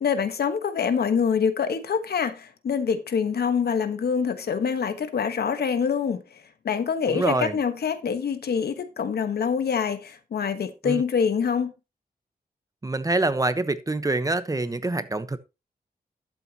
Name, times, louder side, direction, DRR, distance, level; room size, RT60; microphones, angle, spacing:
voice 1, 0.0-11.7, left 6 dB, 75° left, 1.2 m, -25 dB
voice 2, 7.1-7.6 10.8-11.0 12.8-15.4, right 2 dB, 20° right, 1.0 m, -25 dB
12.0 x 8.3 x 2.9 m
wide cardioid pair, 90°, 17 cm